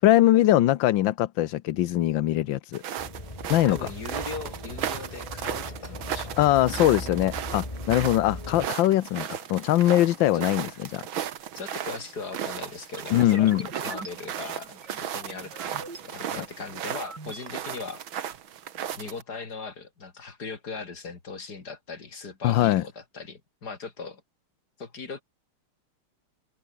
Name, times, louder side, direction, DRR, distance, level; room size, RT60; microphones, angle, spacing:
voice 1, 0.0-2.8 3.5-3.8 6.4-11.0 13.1-13.6 16.4-16.5 22.4-22.8, left 14 dB, 70° left, 1.4 m, -22 dB
sound 1, 2.7-19.2, right 9 dB, 70° right, 2.1 m, -36 dB
sound 2, 3.0-8.7, left 1 dB, 15° left, 3.9 m, -39 dB
voice 2, 3.7-6.6 10.3-10.4 11.4-18.0 19.0-24.2 24.8-25.2, left 4 dB, 45° left, 3.5 m, -39 dB
sound 3, 12.9-16.0 16.5-17.5, right 3 dB, 50° right, 6.3 m, -43 dB
omnidirectional pair, 2.4 m